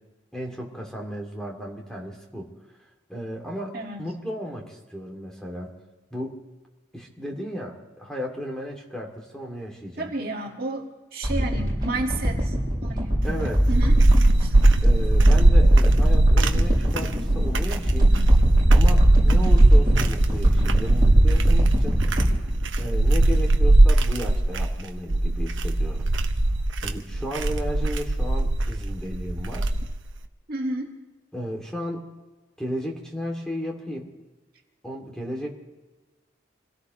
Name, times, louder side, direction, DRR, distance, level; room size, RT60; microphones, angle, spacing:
voice 1, 0.3-2.5 3.1-5.7 6.1-6.4 6.9-10.1 13.2-13.7 14.8-18.1 18.7-22.0 22.8-26.1 26.8-29.7 31.3-32.0 32.6-34.1 34.8-35.6, equal, 5° left, 0 dB, 2.4 m, -34 dB
voice 2, 3.7-4.1 10.0-10.9 11.1-12.5 12.8-13.1 13.7-14.0 14.4-14.5 30.5-30.9, right 2 dB, 50° right, 0 dB, 1.9 m, -31 dB
sound 1, 11.2-23.7 24.0-24.1, equal, 20° right, 7.0 m, -26 dB
sound 2, 13.2-30.1, right 1 dB, 80° right, 1.0 m, -19 dB
26.5 x 17.5 x 3.1 m, 1.2 s
head